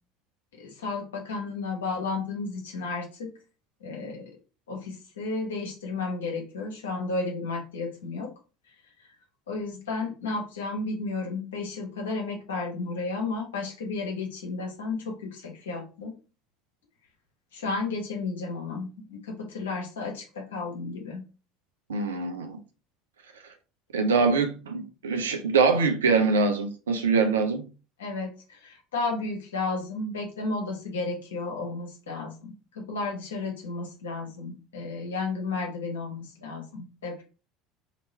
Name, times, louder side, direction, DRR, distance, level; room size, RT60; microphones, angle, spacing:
voice 1, 0.5-3.3 3.8-4.3 4.7-8.3 9.5-16.1 17.5-21.2 28.0-37.2, left 3 dB, 70° left, 1.2 m, -33 dB
voice 2, 21.9-22.6 23.9-27.7, right 4 dB, 70° right, 0.6 m, -24 dB
3.0 x 3.0 x 4.2 m
figure-of-eight pair, 65°, 0 cm